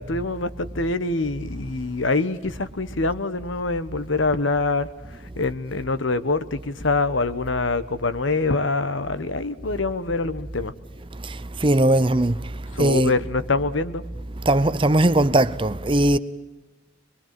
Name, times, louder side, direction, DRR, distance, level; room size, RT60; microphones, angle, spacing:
voice 1, 0.0-4.9 5.4-10.7 12.7-14.0, left 3 dB, 80° left, 1.1 m, -25 dB
voice 2, 11.6-12.4 12.8-13.1 14.5-16.2, right 1 dB, 25° right, 0.7 m, -19 dB
24.0 x 22.5 x 7.6 m
head